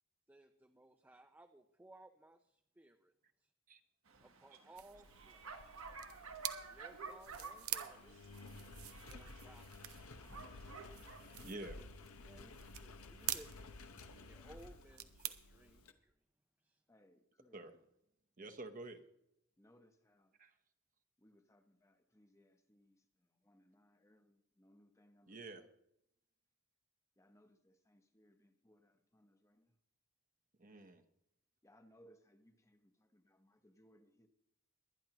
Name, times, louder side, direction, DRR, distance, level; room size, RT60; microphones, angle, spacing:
voice 1, 0.3-3.1 3.4-3.5 4.2-5.9 6.6-8.3 8.9-10.3 11.3-11.7 12.3-16.1 16.6-16.8, right 1 dB, 10° right, 0.4 m, -62 dB
Bark, 4.1-11.2, right 4 dB, 65° right, 1.2 m, -52 dB
sound 1, 4.7-15.9, right 13 dB, 85° right, 0.7 m, -48 dB
Engine, 5.0-15.9, left 3 dB, 85° left, 1.0 m, -55 dB
voice 2, 11.4-11.8 17.5-17.7 18.4-19.0 20.4-20.5 25.3-25.6 30.6-31.0, right 2 dB, 40° right, 0.9 m, -49 dB
voice 3, 16.9-17.7 19.6-20.4 21.2-25.7 27.2-29.8 31.6-34.3, equal, 15° left, 0.9 m, -68 dB
22.5 x 10.0 x 2.9 m
head